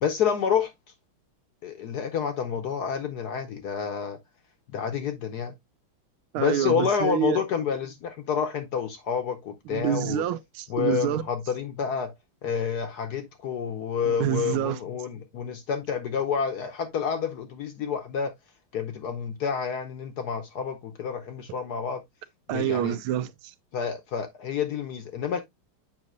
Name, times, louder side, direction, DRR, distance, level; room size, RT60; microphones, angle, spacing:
voice 1, 0.0-0.7 1.6-4.2 4.7-5.5 6.4-10.2 10.7-12.1 12.4-18.3 18.7-22.0 22.5-23.0 23.7-25.4, left 7 dB, 65° left, 1.1 m, -29 dB
voice 2, 6.3-7.4 9.7-11.2 14.2-14.8 22.5-23.5, right 11 dB, 80° right, 1.5 m, -27 dB
7.3 x 5.4 x 2.4 m
omnidirectional pair, 2.3 m